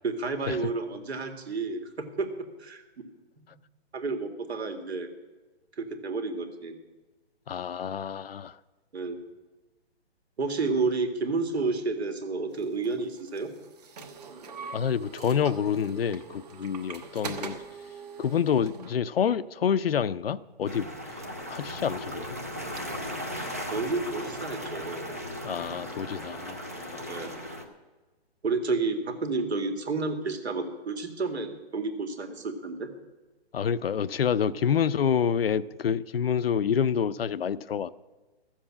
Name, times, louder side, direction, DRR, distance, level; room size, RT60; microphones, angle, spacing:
voice 1, 0.0-2.8 3.9-5.1 5.7-6.8 8.9-9.2 10.4-13.5 23.7-25.0 27.1-27.4 28.4-32.9, right 3 dB, 70° right, 2.1 m, -30 dB
voice 2, 7.5-8.6 14.7-17.6 18.2-20.9 21.5-22.4 25.4-27.3 33.5-37.9, left 7 dB, 60° left, 0.6 m, -28 dB
sound 1, 12.6-19.0, right 4 dB, 40° right, 1.1 m, -42 dB
sound 2, 20.6-27.6, equal, 15° right, 0.4 m, -37 dB
13.5 x 7.4 x 8.6 m
hypercardioid pair, 165°, 33 cm